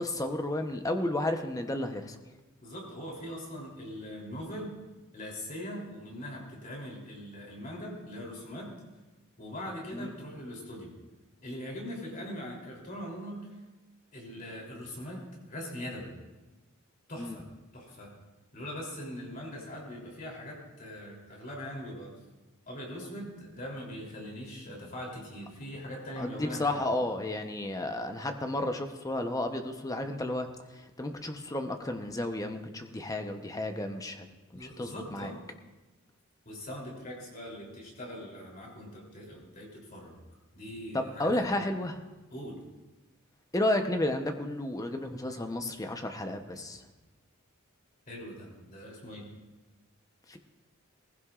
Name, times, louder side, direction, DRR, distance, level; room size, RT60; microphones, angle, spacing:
voice 1, 0.0-2.2 9.9-10.1 17.2-17.4 26.2-30.5 31.0-34.3 34.5-35.3 40.9-42.0 43.5-46.8 50.3-50.4, left 1 dB, 15° left, 6 dB, 0.8 m, -32 dB
voice 2, 2.6-4.7 5.1-8.7 9.4-10.9 11.4-13.6 14.1-15.2 15.5-16.1 17.1-17.4 17.7-18.1 18.5-22.1 22.7-27.0 34.5-35.4 36.4-40.2 40.5-41.5 42.3-42.6 48.1-49.3, equal, 40° left, -2 dB, 3.2 m, -41 dB
19.0 x 15.5 x 2.4 m, 1.1 s
head